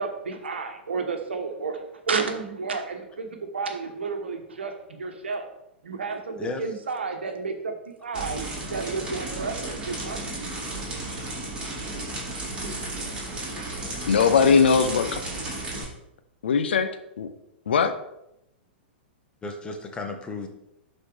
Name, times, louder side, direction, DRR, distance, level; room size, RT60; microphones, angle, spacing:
voice 1, 0.0-1.8 2.1-5.5 5.8-8.4 8.7-10.2, right 4 dB, 75° right, 5 dB, 1.2 m, -31 dB
sound 1, 8.1-15.8, right 2 dB, 15° right, 3.2 m, -33 dB
voice 2, 14.0-15.2 16.4-16.9 17.2-17.3 17.7-17.9, left 6 dB, 70° left, 9 dB, 0.8 m, -20 dB
voice 3, 19.4-20.5, left 3 dB, 15° left, 4 dB, 1.2 m, -34 dB
11.5 x 4.2 x 3.4 m, 0.83 s
figure-of-eight pair, 105°, 6 cm